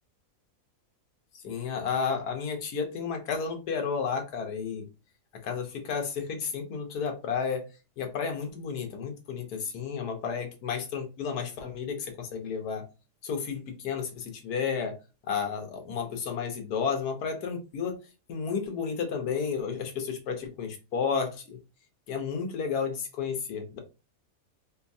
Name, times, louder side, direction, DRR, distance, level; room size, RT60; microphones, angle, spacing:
voice 1, 1.4-4.9 5.4-7.6 8.0-12.8 13.2-14.9 15.3-17.9 18.3-21.6 22.1-23.8, left 6 dB, 80° left, 1.3 m, -32 dB
4.4 x 2.3 x 2.6 m
omnidirectional pair, 1.6 m